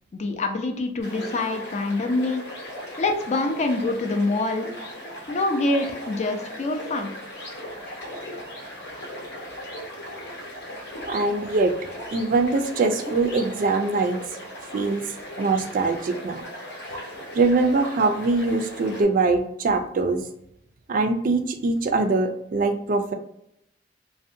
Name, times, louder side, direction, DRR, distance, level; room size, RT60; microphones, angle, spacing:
voice 1, 0.1-2.4 3.0-4.7 5.3-7.1, left 2 dB, 40° left, 5 dB, 0.4 m, -25 dB
sound 1, 1.0-19.0, equal, 85° left, 1.1 m, -38 dB
voice 2, 11.1-11.7 12.1-14.2 14.7-15.0 15.4-16.4 17.3-20.2 20.9-23.1, right 3 dB, 50° right, 6 dB, 0.3 m, -22 dB
2.6 x 2.1 x 2.5 m, 0.77 s
head